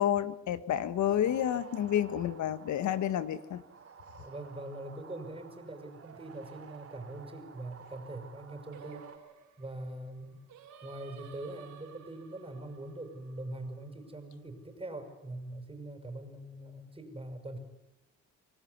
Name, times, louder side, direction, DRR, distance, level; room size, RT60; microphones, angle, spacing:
voice 1, 0.0-3.6, left 10 dB, 70° left, 13 dB, 1.6 m, -30 dB
sound 1, 1.0-9.2, right 6 dB, 50° right, 3.6 m, -52 dB
voice 2, 4.2-9.1 9.6-10.4 10.8-17.6, right 1 dB, 20° right, 7 dB, 5.9 m, -43 dB
Singing, 8.7-14.0, right 8 dB, 75° right, 3.9 m, -54 dB
25.5 x 19.0 x 9.6 m, 0.94 s
cardioid pair, 90°, 30 cm